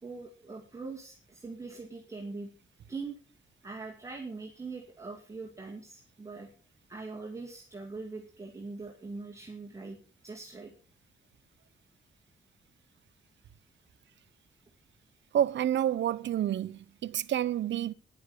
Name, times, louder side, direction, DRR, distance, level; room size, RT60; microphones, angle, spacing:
voice 1, 0.0-2.5 2.9-3.2 3.6-6.5 6.9-10.0 10.2-10.7, right 3 dB, 15° right, 2.0 m, -42 dB
voice 2, 15.3-17.9, right 11 dB, 65° right, 0.7 m, -29 dB
10.5 x 10.5 x 6.8 m
wide cardioid pair, 160°, 20 cm